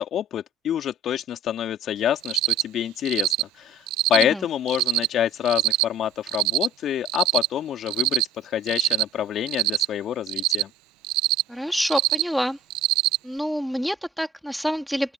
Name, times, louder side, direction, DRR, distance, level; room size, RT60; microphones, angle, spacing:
voice 1, 0.0-3.8 4.1-10.7, left 10 dB, 55° left, 3.4 m, -27 dB
Cricket, 2.2-2.6 3.0-3.4 3.9-4.2 4.7-5.1 5.4-5.8 6.3-6.7 7.0-7.5 7.9-8.2 8.7-9.0 9.5-9.8 10.3-10.6 11.0-11.4 11.8-12.2 12.7-13.2, right 21 dB, 75° right, 1.2 m, -22 dB
voice 2, 11.5-12.6 13.2-15.1, equal, ahead, 3.6 m, -27 dB
open air
hypercardioid pair, 55°, 0 cm